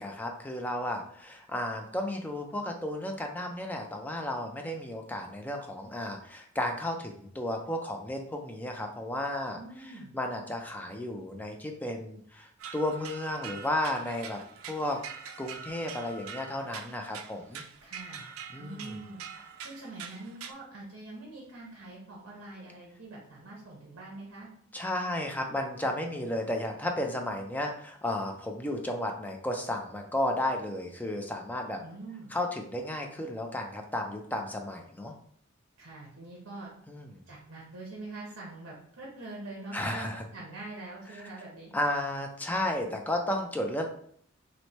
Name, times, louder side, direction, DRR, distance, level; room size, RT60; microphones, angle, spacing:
voice 1, 0.0-14.4 14.7-15.0 15.4-17.6 18.5-19.0 24.7-31.8 32.3-35.1 36.9-37.1 39.7-40.2 41.1-41.3 41.7-43.9, left 1 dB, 10° left, 3 dB, 0.3 m, -33 dB
voice 2, 9.5-10.1 17.8-18.2 18.6-19.2 19.6-24.5 31.8-32.3 35.8-36.7 37.3-41.7, right 2 dB, 55° right, -3 dB, 0.8 m, -44 dB
sound 1, 12.6-20.5, right 7 dB, 70° right, 0.3 m, -44 dB
3.1 x 2.1 x 4.0 m, 0.62 s
head